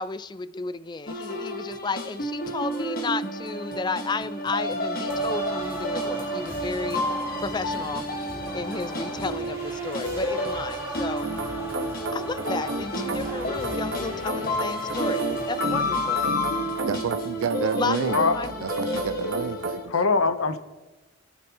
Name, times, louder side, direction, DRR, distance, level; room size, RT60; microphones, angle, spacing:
voice 1, 0.0-7.0 7.4-8.1 8.5-11.3 12.1-15.2 15.5-16.2 17.7-19.0, left 4 dB, 20° left, 0.3 m, -33 dB
sound 1, 1.1-19.8, left 1 dB, 45° left, 1.5 m, -31 dB
sound 2, 5.1-16.4, right 1 dB, 10° right, 1.9 m, -39 dB
sound 3, 11.2-19.9, right 2 dB, 55° right, 1.2 m, -33 dB
voice 2, 16.8-18.2 18.6-19.9, right 7 dB, 75° right, 0.3 m, -30 dB
voice 3, 18.0-18.4 19.9-20.6, left 4 dB, 85° left, 0.9 m, -22 dB
25.5 x 9.8 x 3.0 m
head